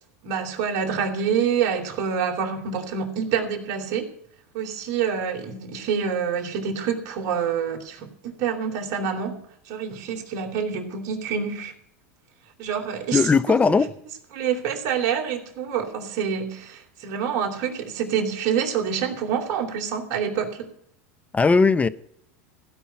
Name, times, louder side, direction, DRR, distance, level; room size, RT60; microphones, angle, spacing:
voice 1, 0.2-4.1 4.5-11.7 12.6-13.8 14.3-20.7, right 7 dB, 50° right, 3.2 m, -27 dB
voice 2, 13.1-13.9 21.3-21.9, left 4 dB, 15° left, 0.6 m, -18 dB
16.0 x 5.5 x 9.5 m
hypercardioid pair, 105°, 8 cm